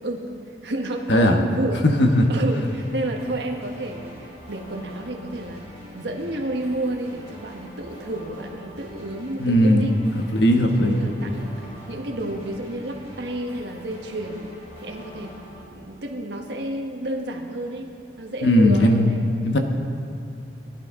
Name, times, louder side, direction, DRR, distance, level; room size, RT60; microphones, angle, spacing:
voice 1, 0.0-1.8 2.3-5.7 5.9-10.0 10.5-14.5 14.8-15.3 15.7-17.9 18.2-19.2, right 1 dB, 75° right, 2 dB, 1.3 m, -31 dB
voice 2, 1.8-2.3 9.4-9.8 10.2-11.3 18.4-19.1 19.4-19.6, equal, 80° left, 4 dB, 1.2 m, -18 dB
sound 1, 1.9-15.6, equal, 35° left, 3.7 m, -44 dB
17.5 x 11.5 x 3.8 m, 2.5 s
head